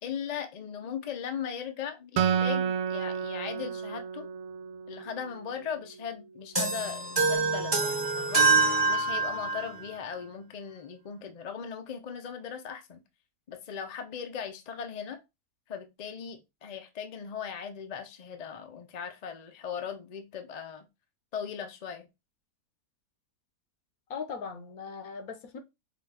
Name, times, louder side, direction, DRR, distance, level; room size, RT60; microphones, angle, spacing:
voice 1, 0.0-4.3 4.9-8.4 8.9-13.0 13.5-15.2 15.7-20.9 21.3-22.1, left 7 dB, 55° left, 0.4 m, -38 dB
Acoustic guitar, 2.2-5.6, right 8 dB, 80° right, 1.1 m, -31 dB
sound 1, 6.6-9.8, right 4 dB, 20° right, 0.9 m, -25 dB
voice 2, 24.1-25.6, left 6 dB, 75° left, 1.2 m, -39 dB
4.9 x 2.5 x 3.3 m
omnidirectional pair, 1.6 m